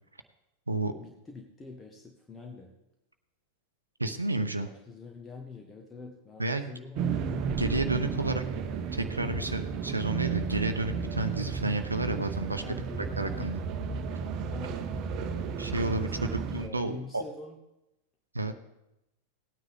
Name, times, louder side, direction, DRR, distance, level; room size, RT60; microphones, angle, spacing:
voice 1, 1.0-2.7 4.6-7.2 8.0-8.5 12.6-13.5 14.4-15.3 15.9-17.6, left 4 dB, 15° left, 3 dB, 1.3 m, -45 dB
voice 2, 4.0-4.7 6.4-6.7 7.6-8.4 8.9-12.6 13.2-13.6 15.6-17.2 18.3-18.6, right 2 dB, 80° right, 8 dB, 0.7 m, -31 dB
sound 1, 7.0-16.7, right 6 dB, 40° right, 1.0 m, -33 dB
18.0 x 9.5 x 3.5 m, 0.90 s
figure-of-eight pair, 90°, 0 cm